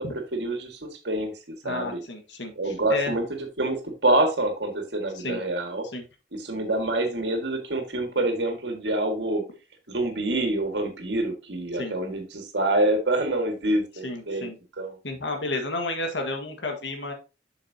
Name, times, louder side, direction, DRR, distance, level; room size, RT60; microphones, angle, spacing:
voice 1, 0.3-1.3 1.6-2.0 2.6-3.2 3.6-5.9 6.3-9.4 9.9-14.5 14.8-14.9, right 1 dB, 70° right, 4 dB, 1.9 m, -26 dB
voice 2, 1.6-3.1 5.1-5.4 5.9-6.0 11.7-12.0 14.0-14.6 15.0-17.1, left 2 dB, 90° left, 5 dB, 1.6 m, -32 dB
7.3 x 6.6 x 2.8 m, 0.32 s
head